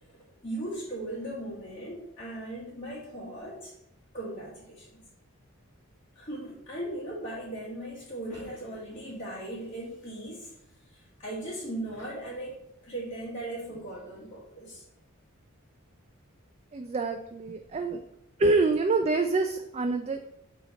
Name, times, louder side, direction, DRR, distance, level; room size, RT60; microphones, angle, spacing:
voice 1, 0.0-3.7 4.1-4.9 6.1-10.5 10.9-12.6 12.8-14.8, right 1 dB, 30° left, -8 dB, 1.3 m, -38 dB
voice 2, 16.7-18.0 18.4-20.3, right 3 dB, 30° right, 6 dB, 0.3 m, -26 dB
7.6 x 2.9 x 5.0 m, 0.82 s
head